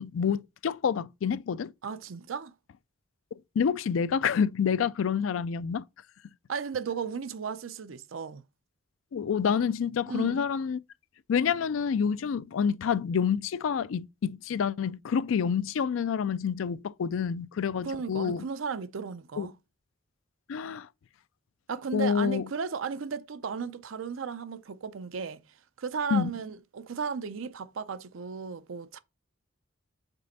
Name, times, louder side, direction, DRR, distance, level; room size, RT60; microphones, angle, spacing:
voice 1, 0.0-1.7 3.6-5.8 9.1-10.8 11.3-18.4 19.4-19.5 20.5-20.9 21.9-22.5 26.1-26.3, left 7 dB, 80° left, 0.4 m, -28 dB
voice 2, 1.8-2.5 6.5-8.4 10.1-10.4 17.8-19.6 21.7-25.4 25.8-29.0, right 6 dB, 85° right, 0.5 m, -35 dB
5.3 x 4.3 x 4.1 m
head